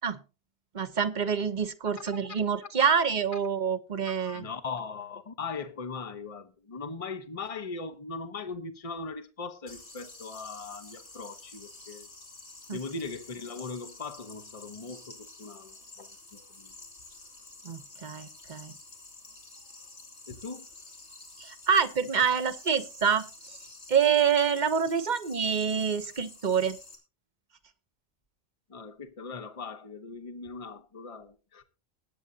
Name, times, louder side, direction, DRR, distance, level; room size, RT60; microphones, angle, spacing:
voice 1, 0.7-4.4 12.7-12.8 17.6-18.7 21.4-23.6 23.9-26.8, right 7 dB, 45° right, 1.0 m, -27 dB
voice 2, 4.2-12.1 12.7-16.8 20.3-20.7 28.7-31.6, left 4 dB, 30° left, 1.1 m, -39 dB
sound 1, 9.7-27.0, left 3 dB, 80° left, 3.0 m, -49 dB
20.5 x 8.6 x 2.8 m
omnidirectional pair, 1.2 m